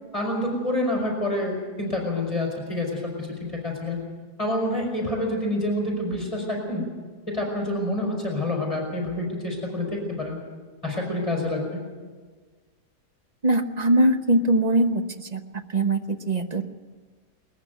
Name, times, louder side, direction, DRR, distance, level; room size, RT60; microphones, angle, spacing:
voice 1, 0.1-4.0 4.4-6.8 7.3-10.4 10.8-11.8, left 1 dB, 20° left, -1 dB, 5.1 m, -27 dB
voice 2, 13.4-15.4 15.7-16.6, right 1 dB, 30° right, 7 dB, 0.9 m, -22 dB
21.0 x 14.5 x 9.3 m, 1.5 s
omnidirectional pair, 1.7 m